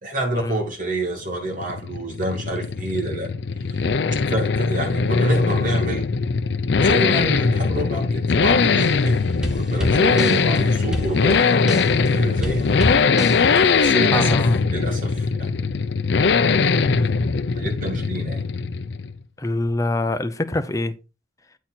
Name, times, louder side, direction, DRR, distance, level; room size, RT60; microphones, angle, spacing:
voice 1, 0.0-3.3 3.7-3.9 4.2-6.1 6.8-9.1 9.5-11.6 12.1-12.7 13.5-15.7 16.5-16.8 17.5-18.5, right 1 dB, 50° right, 2.7 m, -28 dB
sound 1, 1.2-19.2, left 4 dB, 70° left, 0.5 m, -20 dB
sound 2, 8.8-9.1 9.4-12.1 12.4-13.8, equal, 5° right, 1.2 m, -29 dB
voice 2, 14.1-14.6 19.4-20.9, left 2 dB, 20° left, 0.7 m, -24 dB
9.0 x 4.3 x 4.2 m
head